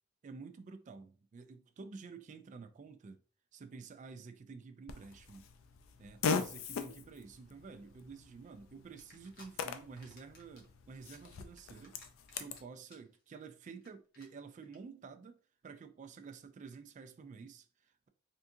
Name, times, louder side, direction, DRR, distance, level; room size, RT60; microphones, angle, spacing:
voice 1, 0.2-3.2 3.5-5.5 6.0-12.0 12.3-15.4 15.6-18.1, right 4 dB, 40° right, 0.3 m, -50 dB
Fart, 4.9-12.6, left 5 dB, 85° left, 0.4 m, -41 dB
sound 1, 9.0-9.5 9.8-10.6 10.9-12.6 12.9-13.2 13.4-13.5 13.8-13.9 14.1-14.3 14.6-14.8, left 1 dB, 50° left, 0.9 m, -59 dB
3.5 x 2.5 x 2.6 m
head